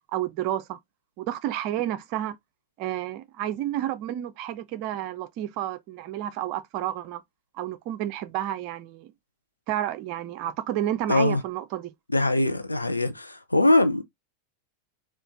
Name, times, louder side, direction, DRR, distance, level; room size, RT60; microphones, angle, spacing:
voice 1, 0.1-0.8 1.2-2.4 2.8-7.2 7.5-9.1 9.7-11.9, right 12 dB, 45° right, 0.6 m, -30 dB
voice 2, 11.1-11.4 12.1-14.0, left 2 dB, 85° left, 0.7 m, -22 dB
4.4 x 2.5 x 3.8 m
figure-of-eight pair, 90°, 0 cm